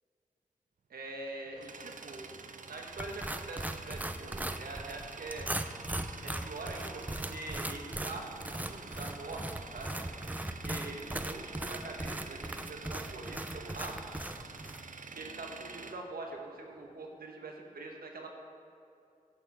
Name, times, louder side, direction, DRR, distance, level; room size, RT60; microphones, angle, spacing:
voice 1, 0.9-2.4 2.7-5.5 6.2-10.0 10.5-14.0 15.1-18.3, right 2 dB, 80° right, 1 dB, 1.3 m, -44 dB
Tools, 1.1-16.9, right 4 dB, 60° right, 0.7 m, -47 dB
sound 1, 3.0-14.8, right 1 dB, 10° right, 0.5 m, -39 dB
11.0 x 10.5 x 3.6 m, 2.5 s
cardioid pair, 40°, 15 cm